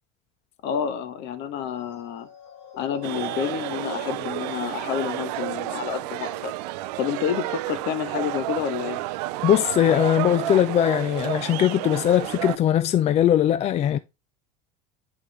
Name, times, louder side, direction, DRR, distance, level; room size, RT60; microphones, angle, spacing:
voice 1, 0.6-2.3 2.8-6.5 7.0-9.0, left 8 dB, 55° left, 1.2 m, -29 dB
sound 1, 1.8-8.5 9.1-9.2, left 4 dB, 75° left, 2.1 m, -44 dB
sound 2, 3.0-12.6, right 16 dB, 75° right, 0.5 m, -31 dB
voice 2, 9.4-14.0, left 11 dB, 30° left, 0.4 m, -20 dB
8.7 x 5.1 x 3.2 m
supercardioid pair, 100°, 21 cm